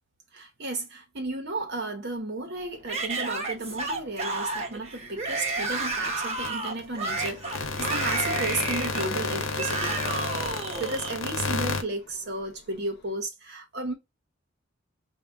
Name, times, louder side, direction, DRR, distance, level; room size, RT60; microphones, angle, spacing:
voice 1, 0.3-10.2 10.8-13.9, right 2 dB, 55° right, 0.9 m, -34 dB
sound 1, 2.5-13.2, left 3 dB, 50° left, 0.7 m, -47 dB
Yell / Screaming, 2.9-11.2, right 3 dB, 30° right, 1.2 m, -31 dB
sound 2, 6.4-6.5 6.8-6.9 7.1-11.8, left 3 dB, 75° left, 0.9 m, -31 dB
5.6 x 2.2 x 3.4 m
head